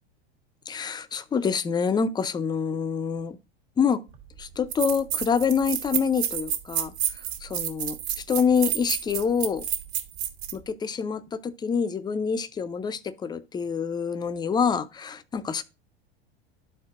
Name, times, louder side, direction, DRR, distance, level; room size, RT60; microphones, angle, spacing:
voice 1, 0.7-3.4 3.8-4.0 4.4-6.9 7.4-8.0 8.3-9.6 10.5-15.6, left 6 dB, 15° left, 0.4 m, -26 dB
sound 1, 4.1-4.2 4.7-10.6, right 10 dB, 75° right, 1.5 m, -29 dB
12.0 x 4.6 x 2.4 m
hypercardioid pair, 105°, 32 cm